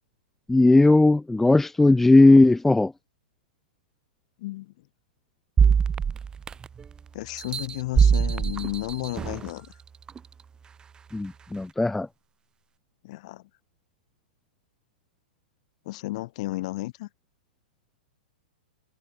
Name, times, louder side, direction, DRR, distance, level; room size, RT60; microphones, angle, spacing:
voice 1, 0.5-2.9 11.1-12.1, left 2 dB, 5° left, 0.7 m, -17 dB
voice 2, 4.4-4.7 7.1-9.7 13.0-13.4 15.8-17.1, left 19 dB, 50° left, 8.0 m, -33 dB
sound 1, 5.6-6.9 7.4-9.5 10.1-10.2, right 6 dB, 15° right, 2.5 m, -23 dB
hypercardioid pair, 115°, 5 cm